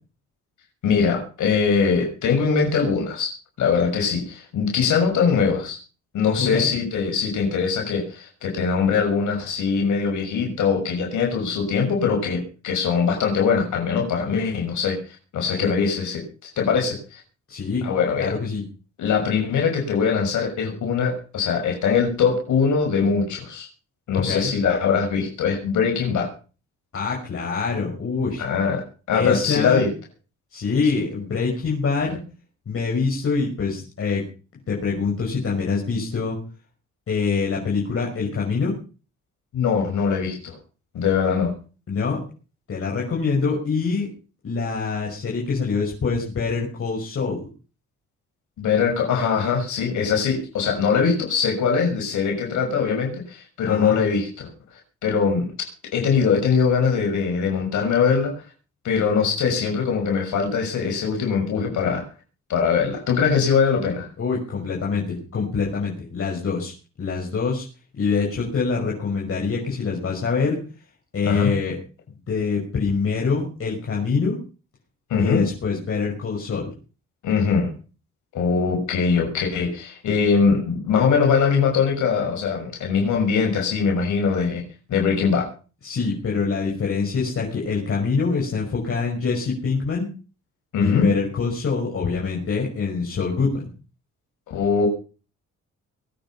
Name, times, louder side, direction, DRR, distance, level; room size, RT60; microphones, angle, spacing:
voice 1, 0.8-3.3 3.6-5.8 6.1-17.2 17.8-18.3 19.0-23.7 24.1-26.3 28.4-28.8 29.1-29.9 39.5-40.6 40.9-41.5 48.6-54.5 55.0-58.3 58.8-62.0 62.5-64.1 71.2-71.5 75.1-75.4 77.2-77.7 78.3-84.6 84.9-85.5 90.7-91.1 94.5-94.9, left 6 dB, 75° left, 1 dB, 6.2 m, -22 dB
voice 2, 6.4-6.7 15.5-15.7 17.5-17.9 18.2-18.6 24.1-24.5 26.9-28.4 29.1-29.8 30.5-32.2 32.7-34.2 34.7-36.4 37.1-38.7 41.9-42.2 42.7-44.1 44.4-47.4 53.7-54.0 64.2-66.7 67.0-67.6 67.9-70.6 71.1-71.8 72.3-74.4 75.2-76.7 85.8-90.1 90.8-93.7, left 4 dB, 45° left, -2 dB, 6.2 m, -25 dB
23.0 x 9.2 x 5.8 m, 0.37 s
cardioid pair, 90°, 30 cm